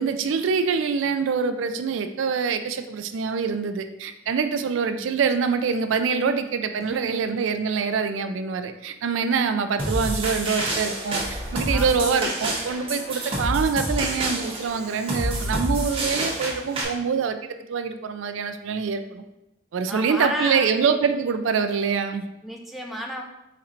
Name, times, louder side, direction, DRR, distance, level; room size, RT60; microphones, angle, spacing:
voice 1, 0.0-19.2 19.7-22.3, right 5 dB, 75° right, 8 dB, 0.3 m, -25 dB
voice 2, 6.8-7.3 11.7-12.1 19.9-20.7 22.4-23.2, equal, ahead, 0 dB, 0.3 m, -32 dB
sound 1, 9.8-16.8, right 1 dB, 30° right, 0.8 m, -28 dB
4.2 x 4.2 x 2.5 m, 0.92 s
head